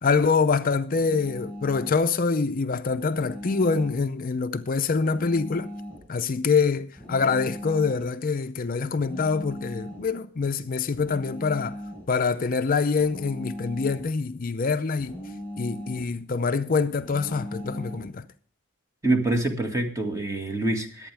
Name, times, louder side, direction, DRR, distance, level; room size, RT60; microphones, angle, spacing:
voice 1, 0.0-5.7 6.1-11.8 12.1-15.2 15.6-18.3, left 4 dB, 45° left, 0.5 m, -25 dB
sound 1, 0.9-2.1 2.9-4.1 5.0-6.1 7.0-8.1 9.0-10.1 11.0-12.1 13.0-14.1 15.0-16.1 17.0-18.1, equal, 5° left, 4.8 m, -38 dB
voice 2, 19.0-21.1, right 2 dB, 15° right, 1.9 m, -25 dB
21.5 x 8.9 x 3.4 m
head